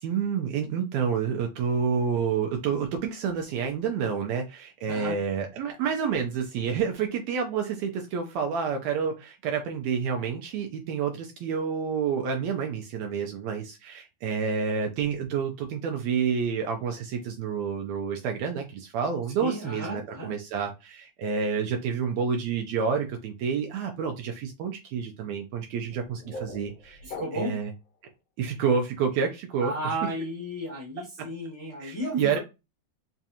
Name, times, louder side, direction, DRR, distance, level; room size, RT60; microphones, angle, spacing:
voice 1, 0.0-27.0 27.3-27.7 28.4-29.7 31.2-31.3 31.8-32.4, right 6 dB, 80° right, 4 dB, 1.6 m, -29 dB
voice 2, 19.4-20.3 27.0-27.5 29.6-32.4, equal, 40° left, -4 dB, 0.3 m, -34 dB
sound 1, 25.8-27.8, left 2 dB, 70° left, 1.6 m, -42 dB
5.0 x 2.4 x 2.7 m, 0.25 s
omnidirectional pair, 3.7 m